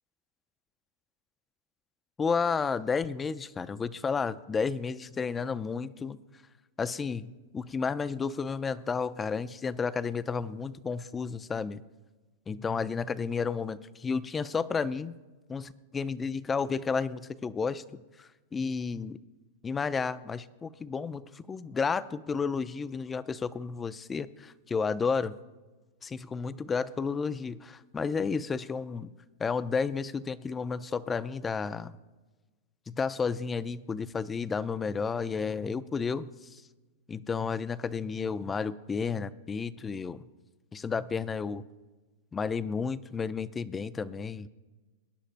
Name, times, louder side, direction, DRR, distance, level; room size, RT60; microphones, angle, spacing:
voice 1, 2.2-6.2 6.8-11.8 12.5-15.2 15.5-17.8 18.2-19.2 19.6-25.4 26.0-29.1 29.4-31.9 32.9-36.6 37.1-40.2 40.7-41.6 42.3-44.5, left 5 dB, 15° left, 15 dB, 0.4 m, -32 dB
21.5 x 10.5 x 2.5 m, 1.3 s
supercardioid pair, 145°, 0 cm